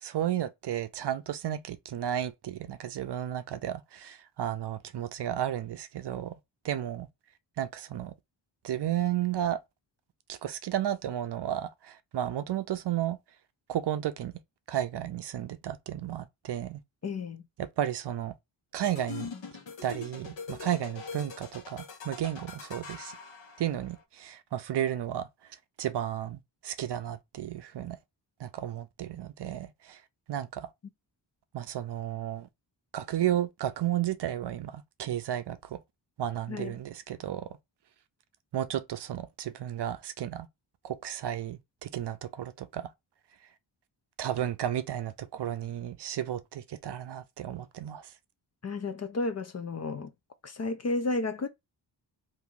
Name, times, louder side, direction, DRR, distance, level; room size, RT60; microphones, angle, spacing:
voice 1, 0.0-6.3 6.6-7.1 7.6-8.1 8.6-9.6 10.3-13.2 13.7-14.3 14.7-16.8 17.6-18.3 18.7-19.3 19.8-23.2 23.6-25.3 25.8-28.0 28.4-30.0 30.3-30.7 31.5-32.5 32.9-35.8 36.2-37.5 38.5-40.5 40.8-42.9 44.2-48.1, right 11 dB, 65° right, 0.5 m, -33 dB
voice 2, 17.0-17.4 36.5-36.8 48.6-50.1 50.4-51.5, left 3 dB, 40° left, 0.4 m, -32 dB
sound 1, 18.8-24.0, left 5 dB, 80° left, 1.0 m, -43 dB
2.9 x 2.6 x 3.5 m
wide cardioid pair, 175°, 45 cm